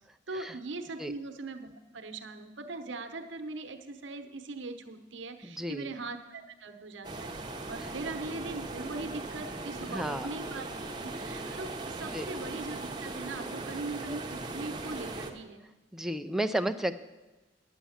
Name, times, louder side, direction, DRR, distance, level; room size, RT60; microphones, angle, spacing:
voice 1, 0.3-7.3 7.7-10.7 11.0-15.6, right 3 dB, 70° right, 6 dB, 1.0 m, -40 dB
voice 2, 5.4-5.9 9.9-10.3 11.5-11.6 12.1-12.3 15.9-17.0, right 1 dB, ahead, 7 dB, 0.4 m, -32 dB
sound 1, 7.0-15.3, right 2 dB, 25° right, 0.9 m, -39 dB
10.0 x 8.5 x 7.2 m, 1.1 s
head